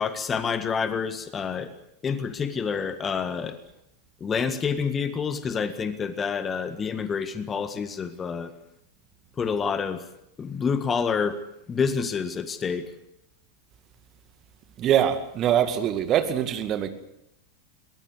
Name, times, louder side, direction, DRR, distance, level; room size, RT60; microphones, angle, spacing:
voice 1, 0.0-1.7 2.0-3.6 4.2-8.5 9.4-10.1 10.4-11.4 11.7-12.9, left 6 dB, 20° left, 1.7 m, -28 dB
voice 2, 14.8-16.9, right 10 dB, 30° right, 2.3 m, -23 dB
22.5 x 20.5 x 8.0 m
figure-of-eight pair, 90°, 0 cm